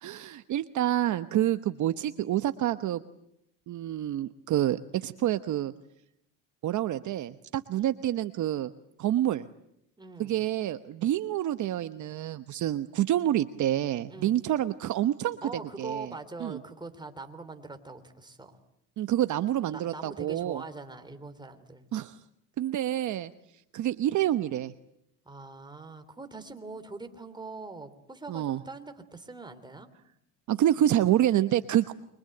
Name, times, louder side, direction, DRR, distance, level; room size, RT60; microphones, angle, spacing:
voice 1, 0.0-3.0 3.7-5.7 6.6-8.7 9.0-9.5 10.2-16.1 16.4-16.6 19.0-20.6 21.9-22.2 22.6-23.3 23.7-24.7 28.3-28.6 30.5-31.9, right 12 dB, 50° right, 11 dB, 1.0 m, -28 dB
voice 2, 10.0-10.5 14.1-14.4 15.4-18.6 19.7-21.9 25.2-29.9, right 3 dB, 10° right, 7 dB, 3.2 m, -43 dB
29.5 x 24.0 x 7.9 m, 0.79 s
cardioid pair, 110°, 38 cm